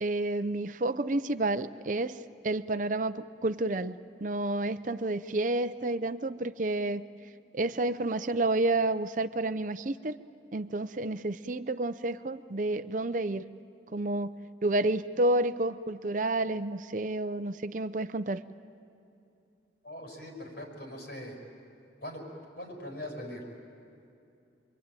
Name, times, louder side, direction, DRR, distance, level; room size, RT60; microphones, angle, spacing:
voice 1, 0.0-2.2 2.4-7.0 7.5-10.2 10.5-13.4 13.9-18.4, right 2 dB, 45° right, 11 dB, 0.6 m, -30 dB
voice 2, 19.8-21.4 22.0-22.2 22.6-23.4, left 1 dB, 60° left, 1 dB, 5.9 m, -41 dB
27.5 x 23.5 x 9.1 m, 2.6 s
head